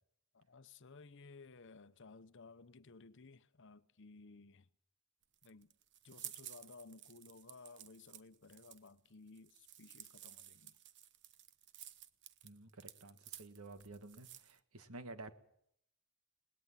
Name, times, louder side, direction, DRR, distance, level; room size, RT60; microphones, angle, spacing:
voice 1, 0.3-4.7 5.4-5.7 6.0-10.8, left 4 dB, 60° left, 0.8 m, -57 dB
sound 1, 5.2-14.6, right 12 dB, 55° right, 1.0 m, -54 dB
voice 2, 12.4-15.3, right 2 dB, 90° right, 1.7 m, -52 dB
21.0 x 19.0 x 7.5 m
head